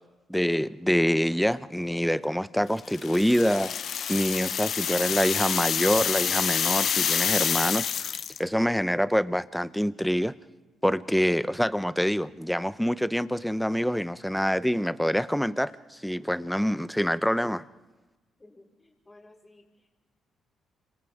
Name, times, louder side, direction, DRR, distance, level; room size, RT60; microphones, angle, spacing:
voice 1, 0.3-3.8 4.1-8.1 8.4-10.3 10.8-17.6, equal, ahead, 14 dB, 0.7 m, -26 dB
sound 1, 2.9-8.5, left 8 dB, 60° left, 0.7 m, -27 dB
voice 2, 18.4-19.9, left 2 dB, 15° left, -1 dB, 4.6 m, -55 dB
29.5 x 27.0 x 3.6 m, 1.1 s
cardioid pair, 90°, 0 cm